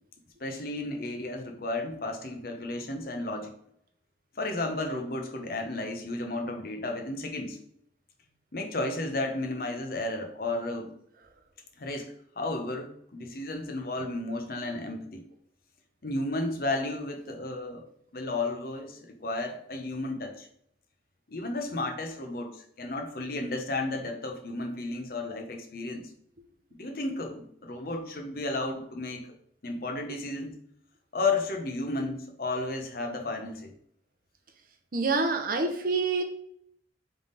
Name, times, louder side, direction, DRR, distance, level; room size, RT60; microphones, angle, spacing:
voice 1, 0.4-3.5 4.4-7.6 8.5-10.9 11.8-15.2 16.0-17.9 18.1-20.5 21.3-26.1 26.8-29.3 29.6-30.6 31.1-33.7, left 2 dB, 55° left, 4 dB, 0.7 m, -33 dB
voice 2, 34.9-36.2, right 3 dB, 50° right, 4 dB, 0.7 m, -26 dB
3.5 x 3.5 x 4.0 m, 0.68 s
head